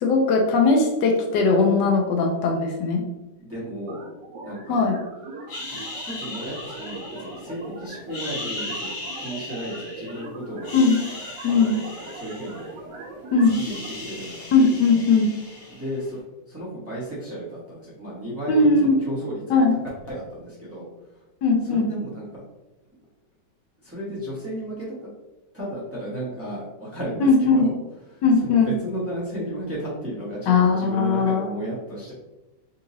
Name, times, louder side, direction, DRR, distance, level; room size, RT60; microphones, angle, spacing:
voice 1, 0.0-3.1 4.7-5.0 10.7-11.0 11.4-11.7 13.3-13.6 14.5-15.3 18.5-19.0 19.5-19.7 21.4-21.9 27.2-27.7 28.2-28.7 30.5-31.5, left 4 dB, 80° left, 1 dB, 1.2 m, -19 dB
voice 2, 3.4-4.0 4.4-4.9 5.7-10.7 11.5-12.6 13.5-14.5 15.7-16.2 16.5-21.2 21.6-22.4 23.8-24.9 25.5-27.8 28.1-32.1, right 1 dB, 10° right, -8 dB, 0.9 m, -34 dB
sound 1, 3.9-13.9, right 3 dB, 80° right, 1.4 m, -40 dB
sound 2, 5.5-7.6 8.0-10.2 10.6-13.0 13.2-16.1, left 2 dB, 60° left, 1.1 m, -37 dB
3.9 x 2.8 x 2.6 m, 1.0 s
omnidirectional pair, 1.9 m